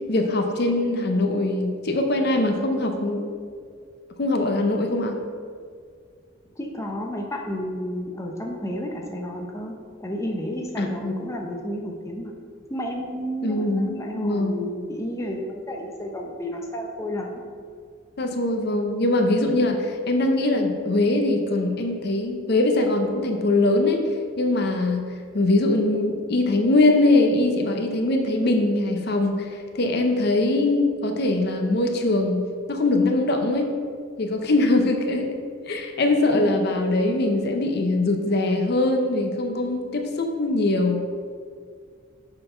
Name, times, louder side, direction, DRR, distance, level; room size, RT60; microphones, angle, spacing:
voice 1, 0.0-3.3 4.2-5.2 10.8-11.2 13.4-14.6 18.2-24.0 24.4-25.0 25.3-32.4 32.7-33.7 34.2-35.4 35.7-41.1, left 2 dB, 55° left, 4 dB, 0.6 m, -22 dB
voice 2, 6.6-9.7 10.0-12.3 12.7-17.4 36.3-36.5, equal, 15° left, 0 dB, 0.6 m, -31 dB
6.7 x 3.9 x 5.5 m, 2.1 s
head